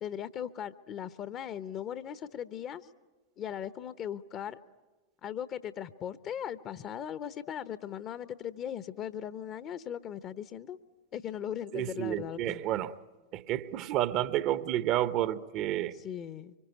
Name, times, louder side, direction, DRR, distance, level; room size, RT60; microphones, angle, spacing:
voice 1, 0.0-2.8 3.4-4.6 5.2-10.8 11.1-12.6 16.0-16.5, left 9 dB, 30° left, 1.1 m, -38 dB
voice 2, 11.7-13.0 13.3-15.9, right 13 dB, 40° right, 1.0 m, -30 dB
26.0 x 24.5 x 9.2 m
figure-of-eight pair, 90°, 0 cm